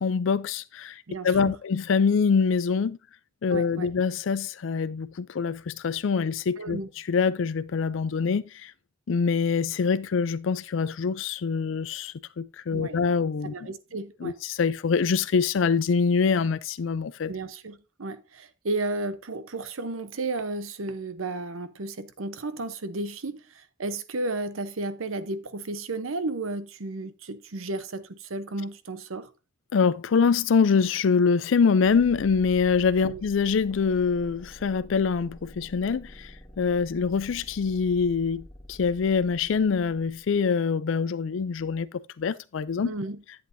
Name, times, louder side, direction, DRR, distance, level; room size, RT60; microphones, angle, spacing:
voice 1, 0.0-3.0 3.4-6.8 7.1-8.7 9.1-13.5 14.2-17.3 29.7-36.3 36.6-41.9 42.2-42.9, left 5 dB, 65° left, 0.4 m, -24 dB
voice 2, 1.1-1.6 3.5-3.9 6.6-6.9 12.7-13.0 13.4-14.4 17.3-29.3 33.0-33.2 42.8-43.2, right 2 dB, 90° right, 0.8 m, -33 dB
sound 1, 31.8-40.5, equal, 15° left, 1.4 m, -48 dB
11.0 x 7.9 x 2.6 m
head